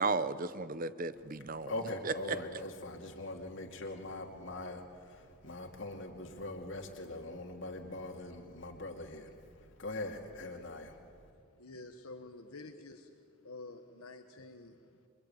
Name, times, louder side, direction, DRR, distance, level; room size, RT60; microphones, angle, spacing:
voice 1, 0.0-1.7 2.0-2.4, right 3 dB, 40° right, 14 dB, 0.8 m, -34 dB
voice 2, 1.7-9.3 9.8-11.0, left 2 dB, 60° left, 2 dB, 2.4 m, -42 dB
voice 3, 11.6-13.1 13.4-15.1, left 2 dB, 90° left, 5 dB, 1.5 m, -49 dB
27.0 x 23.5 x 9.1 m, 2.5 s
head